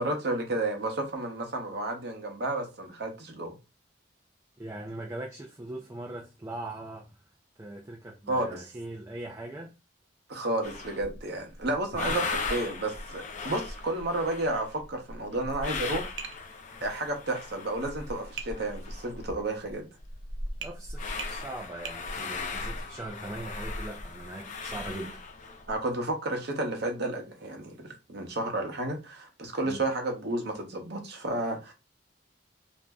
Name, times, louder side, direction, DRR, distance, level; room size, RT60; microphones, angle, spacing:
voice 1, 0.0-3.6 8.3-8.6 10.3-16.1 16.8-19.9 25.7-31.7, right 2 dB, 65° right, 0.8 m, -32 dB
voice 2, 4.6-7.2 7.6-9.7 12.1-12.2 20.6-25.2 29.6-29.9, right 2 dB, 15° right, 0.4 m, -40 dB
sound 1, 10.6-11.2 11.6-19.4 19.7-19.8 20.0-25.8, left 3 dB, 45° left, 0.5 m, -37 dB
Tap, 16.2-16.4 18.4-18.6 20.6-20.8 21.2-21.4 21.9-22.0, right 7 dB, 85° right, 0.4 m, -38 dB
2.6 x 2.1 x 3.4 m
head